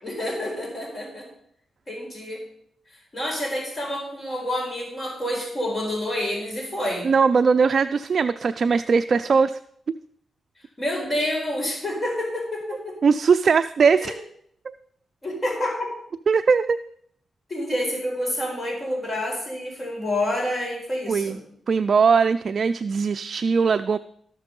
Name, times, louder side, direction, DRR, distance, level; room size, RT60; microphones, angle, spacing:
voice 1, 0.0-1.3 1.9-2.4 3.1-7.1 10.8-13.0 14.0-14.1 15.2-15.9 17.5-21.4, left 1 dB, 35° left, -1 dB, 4.4 m, -28 dB
voice 2, 7.0-9.6 13.0-14.1 14.7-14.8 16.3-16.8 21.1-21.4 21.7-24.0, right 5 dB, 55° right, 10 dB, 0.3 m, -20 dB
13.5 x 6.0 x 5.3 m, 0.67 s
cardioid pair, 75°, 0 cm